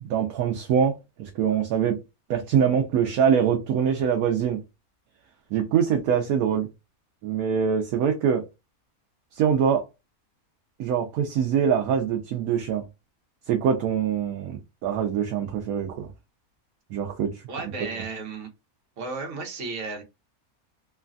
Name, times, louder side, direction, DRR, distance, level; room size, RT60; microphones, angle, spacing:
voice 1, 0.0-2.0 2.3-4.6 5.5-6.7 7.2-8.4 9.3-9.8 10.8-12.8 13.5-16.1 16.9-17.4, right 8 dB, 80° right, 1.0 m, -24 dB
voice 2, 17.5-18.5 19.0-20.0, right 3 dB, 60° right, 1.2 m, -34 dB
3.1 x 2.2 x 2.4 m
omnidirectional pair, 1.5 m